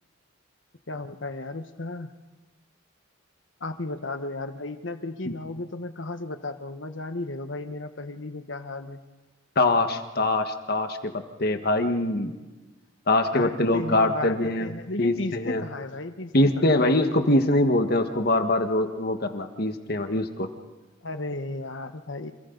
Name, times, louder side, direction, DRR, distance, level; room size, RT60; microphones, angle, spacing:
voice 1, 0.9-2.1 3.6-9.0 13.3-16.9 21.0-22.3, left 2 dB, 65° left, 8 dB, 1.3 m, -34 dB
voice 2, 9.5-11.1 11.4-12.3 13.1-14.7 15.0-15.6 16.3-20.5, left 2 dB, 50° left, 6 dB, 1.6 m, -23 dB
30.0 x 27.5 x 4.0 m, 1.2 s
head